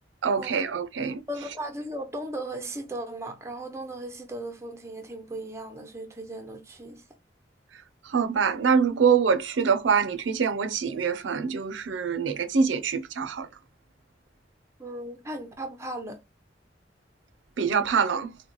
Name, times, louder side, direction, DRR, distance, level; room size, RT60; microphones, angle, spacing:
voice 1, 0.2-1.2 8.0-13.5 17.6-18.4, right 6 dB, 80° right, 0.5 m, -24 dB
voice 2, 1.3-7.0 14.8-16.2, right 1 dB, 15° right, 0.6 m, -37 dB
3.7 x 2.2 x 3.0 m
head